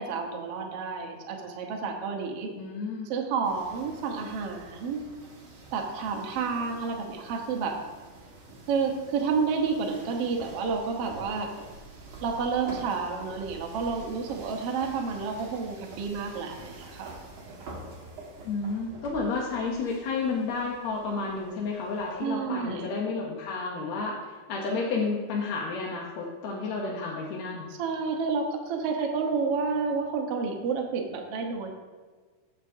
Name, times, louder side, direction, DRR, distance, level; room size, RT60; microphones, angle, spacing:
voice 1, 0.0-2.5 3.0-5.0 5.7-7.8 8.7-11.5 12.2-17.1 22.2-22.9 27.8-31.7, right 5 dB, 70° right, 1 dB, 1.4 m, -30 dB
voice 2, 2.6-3.1 18.4-24.2 24.5-27.7, left 4 dB, 70° left, -2 dB, 1.7 m, -31 dB
sound 1, 3.4-22.3, right 2 dB, 45° right, 2.0 m, -47 dB
15.5 x 6.7 x 2.7 m, 1.5 s
omnidirectional pair, 4.1 m